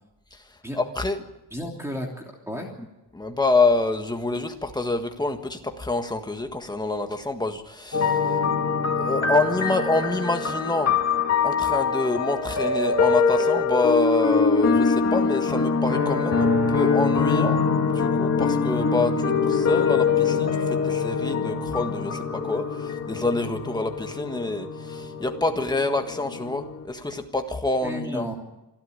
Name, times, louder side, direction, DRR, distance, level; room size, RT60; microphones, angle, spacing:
voice 1, 0.7-1.2 3.1-8.4 9.0-11.0 11.4-28.3, left 2 dB, 10° left, 5 dB, 1.6 m, -27 dB
voice 2, 1.5-2.7 27.8-28.3, equal, 5° right, 1 dB, 2.9 m, -33 dB
sound 1, 7.9-26.8, left 5 dB, 40° left, 2.3 m, -24 dB
26.5 x 12.0 x 9.8 m, 0.97 s
wide cardioid pair, 165°, 41 cm